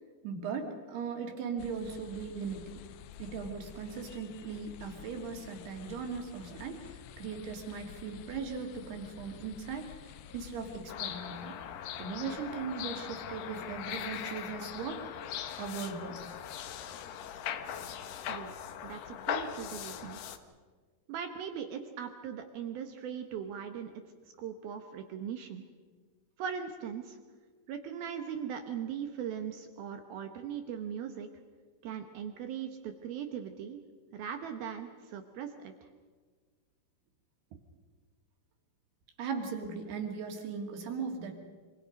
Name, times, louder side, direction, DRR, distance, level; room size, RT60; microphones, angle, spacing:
voice 1, 0.2-2.8 3.2-11.5 12.0-15.0 15.6-16.2 39.2-41.4, right 5 dB, 55° right, 3 dB, 4.0 m, -38 dB
sound 1, 1.6-10.9, left 11 dB, 90° left, 2.4 m, -50 dB
sound 2, 10.9-20.4, left 9 dB, 70° left, 2.6 m, -40 dB
voice 2, 18.8-20.2 21.1-23.9 24.4-25.6 26.4-27.2 27.7-31.3 31.8-33.8 34.1-35.7, right 8 dB, 75° right, 6 dB, 2.2 m, -39 dB
27.0 x 26.5 x 5.3 m, 1.5 s
omnidirectional pair, 6.0 m